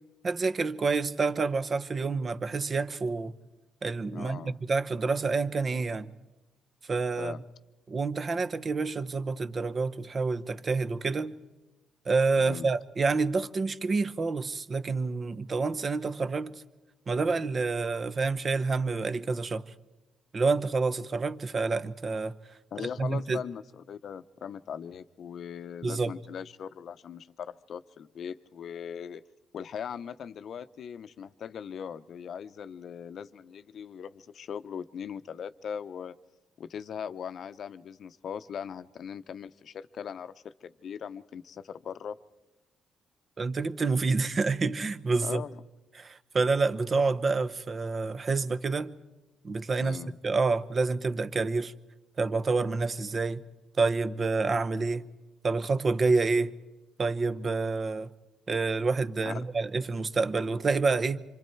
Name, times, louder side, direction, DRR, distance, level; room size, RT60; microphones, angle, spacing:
voice 1, 0.2-3.3 3.8-4.4 4.7-6.1 6.9-7.3 7.9-11.4 12.0-16.6 17.1-19.6 20.3-22.3 23.0-23.4 25.8-26.1 43.4-45.4 46.0-48.9 49.4-50.0 50.2-51.7 52.2-53.4 53.8-55.1 55.4-56.5 57.0-58.1 58.5-61.2, right 4 dB, 40° right, 0.9 m, -28 dB
voice 2, 4.1-4.6 7.2-7.4 12.4-12.7 22.7-29.2 29.5-36.2 36.6-42.2 45.2-45.6 49.8-50.2 59.3-59.4, left 7 dB, 60° left, 0.7 m, -40 dB
27.5 x 25.0 x 4.6 m
cardioid pair, 90°, 0 cm